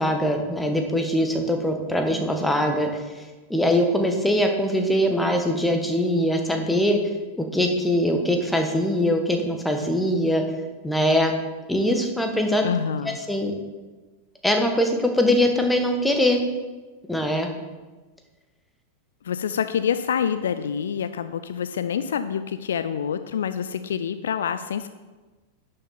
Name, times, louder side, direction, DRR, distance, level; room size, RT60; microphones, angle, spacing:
voice 1, 0.0-3.2 3.5-7.0 7.4-10.4 10.8-11.3 11.7-12.7 13.0-13.5 14.4-16.4 17.1-17.5, left 1 dB, 5° left, 4 dB, 1.4 m, -22 dB
voice 2, 12.6-13.2 19.2-24.9, left 8 dB, 65° left, 12 dB, 0.4 m, -27 dB
11.0 x 6.6 x 4.3 m, 1.2 s
figure-of-eight pair, 90°, 0 cm